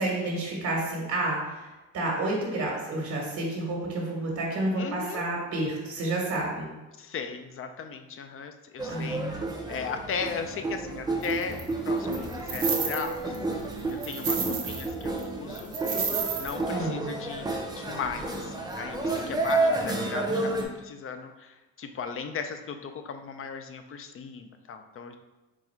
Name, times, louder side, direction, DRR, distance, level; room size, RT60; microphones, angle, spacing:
voice 1, 0.0-1.6 1.9-6.7 8.9-9.3 16.7-17.0, right 2 dB, 70° right, -2 dB, 1.2 m, -30 dB
voice 2, 4.7-5.3 7.0-13.4 13.9-15.8 16.4-17.5 17.8-25.2, left 6 dB, 45° left, 7 dB, 0.5 m, -37 dB
sound 1, 8.8-20.6, right 2 dB, 15° right, 0.7 m, -31 dB
sound 2, 11.2-11.6 12.1-13.4 13.7-14.9 15.2-15.3 15.5-16.6, right 6 dB, 50° right, 0.7 m, -31 dB
4.0 x 2.3 x 4.4 m, 1.1 s
cardioid pair, 90°, 30 cm